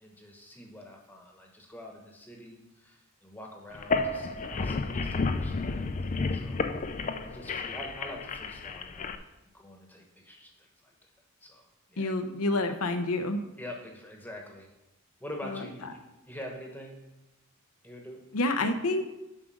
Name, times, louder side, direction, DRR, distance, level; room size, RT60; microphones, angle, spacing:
voice 1, 0.0-6.6 7.2-9.2 9.5-10.9 11.4-11.7 11.9-12.2 13.6-14.7 15.2-16.0 16.2-17.0 17.8-18.2, left 1 dB, 10° left, 1 dB, 1.0 m, -45 dB
sound 1, 3.7-9.1, left 3 dB, 35° left, 0.4 m, -31 dB
voice 2, 12.0-13.4 15.5-15.6 18.3-19.2, left 2 dB, 90° left, 7 dB, 0.7 m, -28 dB
7.6 x 4.9 x 6.2 m, 0.99 s
head